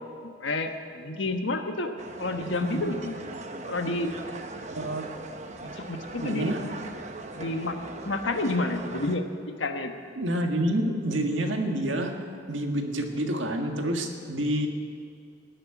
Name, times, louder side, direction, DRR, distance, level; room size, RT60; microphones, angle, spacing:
voice 1, 0.2-1.9 2.2-3.2 3.7-4.1 5.6-6.5 7.4-7.8 8.0-9.2 9.6-9.9, left 2 dB, 85° left, 6 dB, 1.3 m, -29 dB
sound 1, 2.0-9.2, right 2 dB, 40° right, 0.9 m, -40 dB
voice 2, 2.5-2.8 4.7-5.0 6.2-6.6 10.2-12.1 12.5-14.7, right 1 dB, 90° right, 3 dB, 1.8 m, -28 dB
19.0 x 6.7 x 9.4 m, 2.3 s
head